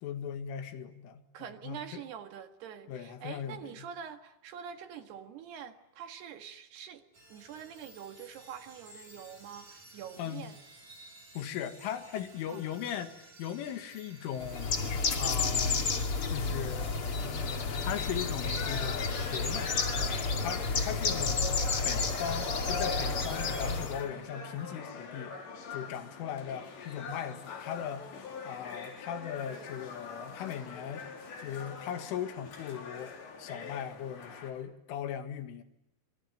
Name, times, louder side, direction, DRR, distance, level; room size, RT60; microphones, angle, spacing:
voice 1, 0.0-1.2 1.6-2.0 2.9-3.9 10.2-10.5 11.3-14.8 15.2-15.9 16.3-19.8 20.1-21.5 21.8-25.4 25.7-28.1 28.4-31.1 31.4-35.6, left 9 dB, 85° left, 8 dB, 4.4 m, -39 dB
voice 2, 1.3-7.0 7.3-10.6 12.5-12.6, right 8 dB, 65° right, 7 dB, 3.5 m, -45 dB
sound 1, 7.1-22.7, right 2 dB, 40° right, 6.9 m, -56 dB
Bird, 14.4-24.0, left 4 dB, 40° left, 2.4 m, -31 dB
sound 2, 17.4-34.5, left 4 dB, 65° left, 6.0 m, -44 dB
26.5 x 24.0 x 9.1 m, 0.78 s
omnidirectional pair, 5.5 m